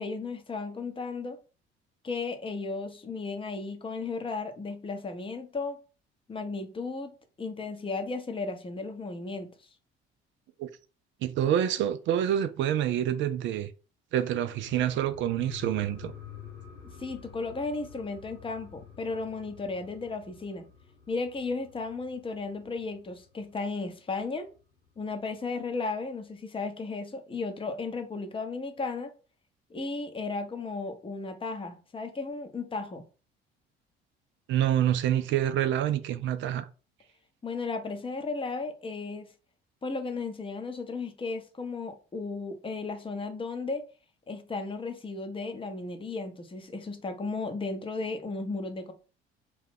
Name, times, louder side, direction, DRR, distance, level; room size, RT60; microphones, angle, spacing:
voice 1, 0.0-1.4 2.0-5.8 6.3-7.1 7.4-9.5 17.0-20.6 21.1-24.5 25.0-29.1 29.7-33.0 37.4-39.3 39.8-43.9 44.3-48.9, left 3 dB, 15° left, 0.7 m, -35 dB
voice 2, 11.2-13.7 14.1-16.1 34.5-36.7, right 11 dB, 40° right, 0.4 m, -27 dB
sound 1, 14.4-23.5 23.9-24.0, left 7 dB, 85° left, 1.1 m, -49 dB
2.6 x 2.2 x 3.6 m
figure-of-eight pair, 55°, 30 cm